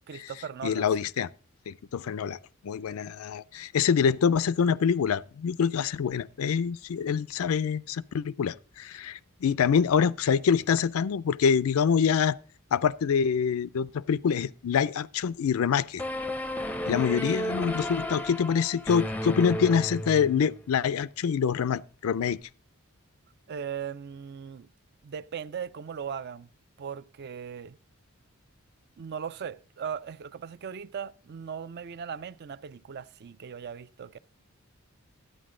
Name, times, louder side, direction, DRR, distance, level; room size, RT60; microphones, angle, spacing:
voice 1, 0.1-1.1 23.5-24.7 25.0-26.5 26.8-27.8 29.0-34.2, right 7 dB, 50° right, 0.4 m, -38 dB
voice 2, 0.6-1.3 1.7-2.4 2.6-12.4 12.7-16.0 16.9-22.4, left 7 dB, 80° left, 0.4 m, -25 dB
sound 1, 16.0-20.6, equal, 5° left, 0.5 m, -33 dB
11.5 x 9.4 x 3.7 m
head